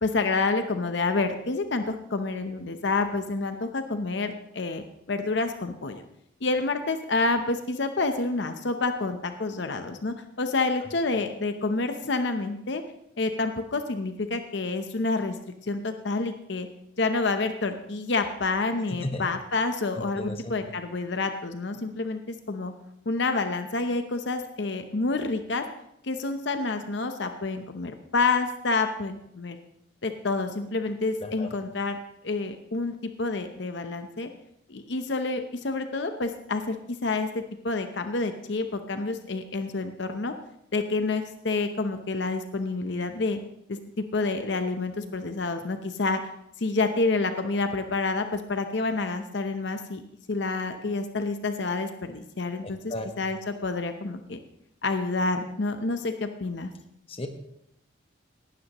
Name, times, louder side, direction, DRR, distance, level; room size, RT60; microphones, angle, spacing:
voice 1, 0.0-4.8 5.1-6.0 6.4-12.8 13.2-15.4 15.6-16.7 17.0-22.7 23.1-25.6 26.0-29.6 30.0-32.0 32.2-34.3 34.7-40.3 40.7-43.4 43.7-46.2 46.6-50.0 50.3-54.4 54.8-56.7, left 3 dB, 65° left, 7 dB, 0.8 m, -28 dB
voice 2, 20.2-20.5 31.2-31.5 52.9-53.1 57.1-57.3, left 1 dB, 30° left, 6 dB, 1.1 m, -33 dB
18.0 x 12.0 x 3.0 m, 0.77 s
head